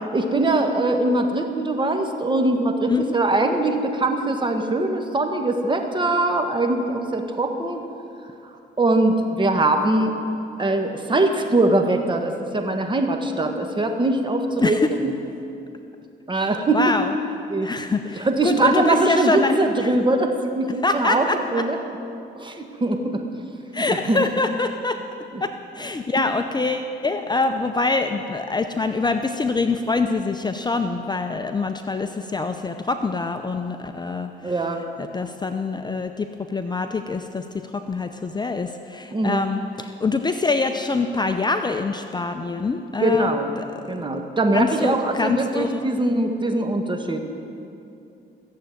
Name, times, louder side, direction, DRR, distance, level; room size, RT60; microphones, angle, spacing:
voice 1, 0.1-7.8 8.8-10.1 10.6-15.1 16.3-17.0 17.5-17.7 18.2-21.8 22.4-23.2 23.8-24.2 25.3-25.4 26.1-26.2 34.4-34.8 39.1-39.4 43.0-43.5 43.9-47.2, right 2 dB, 25° right, 5 dB, 1.6 m, -22 dB
voice 2, 16.3-17.1 17.6-19.9 20.8-21.6 23.7-25.0 25.4-34.3 35.0-43.6 44.5-45.9, left 3 dB, 20° left, 7 dB, 0.6 m, -25 dB
14.5 x 7.7 x 9.2 m, 2.7 s
cardioid pair, 90°, 20 cm